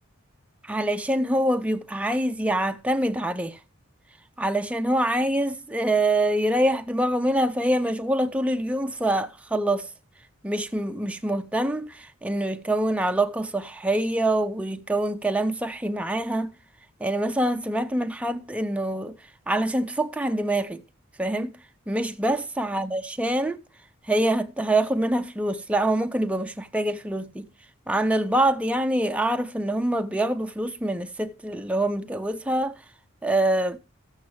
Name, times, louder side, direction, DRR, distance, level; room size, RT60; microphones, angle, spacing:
voice 1, 0.6-3.6 4.4-9.9 10.4-16.5 17.0-19.1 19.5-20.8 21.2-21.5 21.9-23.6 24.1-27.5 27.9-32.7 33.2-33.8, right 1 dB, 5° right, 0.4 m, -25 dB
13.5 x 7.2 x 3.1 m
head